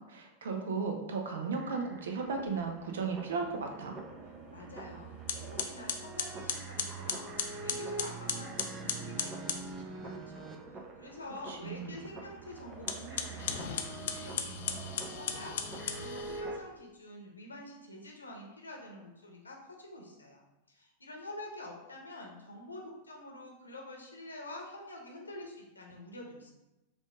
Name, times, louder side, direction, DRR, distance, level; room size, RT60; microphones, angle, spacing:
voice 1, 0.0-4.0 11.5-11.9, right 4 dB, 65° right, 4 dB, 0.6 m, -35 dB
sound 1, 1.6-16.6, right 3 dB, 25° right, 0.6 m, -44 dB
voice 2, 4.5-20.4 20.7-26.5, left 1 dB, 80° left, 0 dB, 0.8 m, -47 dB
sound 2, 4.7-4.9 5.3-9.7 12.8-16.4, left 7 dB, 60° left, 0.4 m, -37 dB
5.2 x 2.5 x 3.5 m, 1.0 s
figure-of-eight pair, 90°, 0 cm